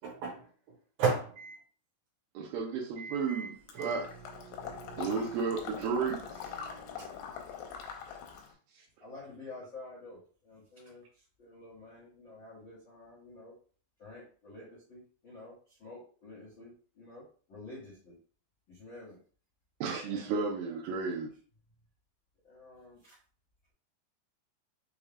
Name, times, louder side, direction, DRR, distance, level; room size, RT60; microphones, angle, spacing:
voice 1, 0.0-0.4 1.0-1.6 3.0-3.5 3.8-4.0 4.5-5.0 6.6-7.0, right 5 dB, 65° right, -3 dB, 2.6 m, -35 dB
voice 2, 2.3-4.1 5.0-6.5 8.7-8.8 19.8-21.3, right 5 dB, 80° right, 0 dB, 2.1 m, -33 dB
Water / Liquid, 3.7-8.5, left 7 dB, 85° left, 2.8 m, -43 dB
voice 3, 9.0-11.0 11.4-13.5 14.0-16.7 17.0-17.2 17.5-18.1 18.7-19.2 20.0-20.3 20.6-21.0 22.4-23.1, left 2 dB, 70° left, -8 dB, 1.1 m, -50 dB
6.3 x 2.4 x 3.5 m, 0.41 s
omnidirectional pair, 4.8 m